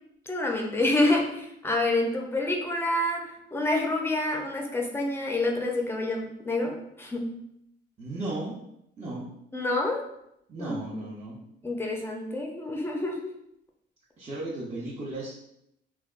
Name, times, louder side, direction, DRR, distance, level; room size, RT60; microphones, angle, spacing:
voice 1, 0.3-3.3 3.5-7.3 9.5-10.0 10.6-10.8 11.6-13.3, left 2 dB, 10° left, 0 dB, 0.6 m, -27 dB
voice 2, 8.0-8.6 9.0-9.3 10.5-11.4 14.2-15.3, right 2 dB, 30° right, -9 dB, 0.8 m, -35 dB
3.3 x 2.3 x 2.4 m, 0.79 s
cardioid pair, 90°, 20 cm